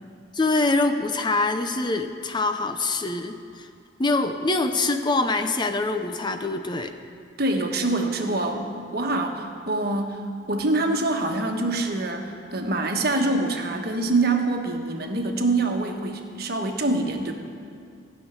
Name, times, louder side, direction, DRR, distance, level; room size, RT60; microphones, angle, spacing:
voice 1, 0.3-3.7 4.0-7.0, left 2 dB, 25° left, 7 dB, 0.5 m, -24 dB
voice 2, 7.4-8.7 8.9-17.3, right 2 dB, 55° right, 3 dB, 1.3 m, -25 dB
16.5 x 6.4 x 9.6 m, 2.4 s
head